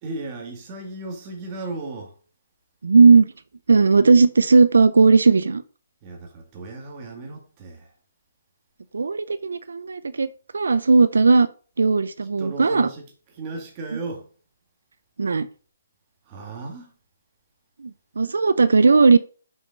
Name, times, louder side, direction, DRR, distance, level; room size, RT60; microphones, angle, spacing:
voice 1, 0.0-2.1 6.0-7.9 12.4-13.0 13.3-14.3 16.3-16.9, right 2 dB, 25° right, 2.0 m, -35 dB
voice 2, 2.8-3.3 3.7-5.6 8.9-10.3 10.5-11.5 11.8-12.9 15.2-15.5 18.2-19.2, right 4 dB, 90° right, 0.5 m, -16 dB
6.3 x 5.4 x 5.2 m
hypercardioid pair, 165°, 0 cm